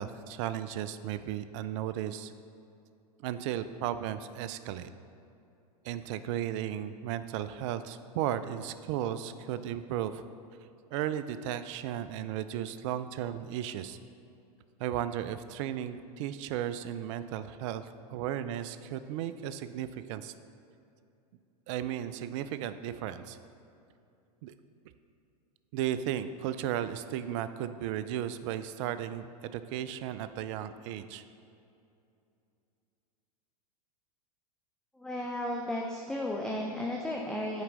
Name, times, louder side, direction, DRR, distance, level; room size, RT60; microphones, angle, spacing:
voice 1, 0.0-2.3 3.2-4.9 5.8-10.2 10.9-14.0 14.8-20.3 21.7-23.4 24.4-24.6 25.7-31.2, right 11 dB, 50° right, 12 dB, 0.4 m, -35 dB
voice 2, 35.0-37.6, left 1 dB, 5° left, -1 dB, 0.6 m, -34 dB
9.6 x 4.5 x 3.9 m, 2.6 s
hypercardioid pair, 100°, 20 cm